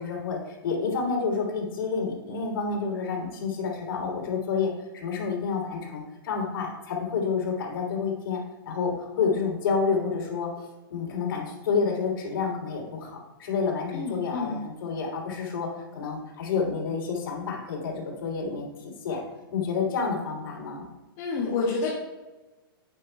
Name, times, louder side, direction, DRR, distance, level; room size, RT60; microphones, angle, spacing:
voice 1, 0.0-8.4 8.6-10.6 10.9-19.2 19.5-20.9, left 5 dB, 65° left, 0 dB, 3.3 m, -29 dB
voice 2, 13.9-14.6 21.2-21.9, left 4 dB, 35° left, -4 dB, 2.1 m, -28 dB
12.0 x 8.7 x 2.3 m, 1.2 s
hypercardioid pair, 150°, 13 cm